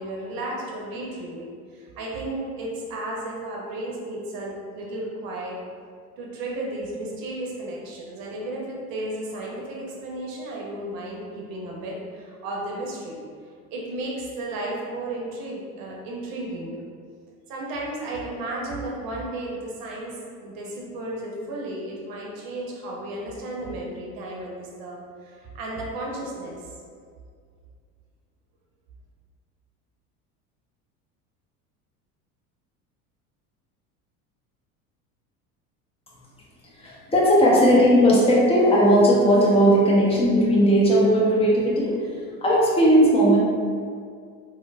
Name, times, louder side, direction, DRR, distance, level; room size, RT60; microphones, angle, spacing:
voice 1, 0.0-5.6 6.2-13.2 13.7-16.7 17.5-26.6, right 1 dB, 50° right, -2 dB, 0.8 m, -33 dB
voice 2, 36.8-41.9 42.4-43.4, equal, 15° left, -5 dB, 0.6 m, -17 dB
3.0 x 2.1 x 2.2 m, 2.1 s
hypercardioid pair, 75°, 46 cm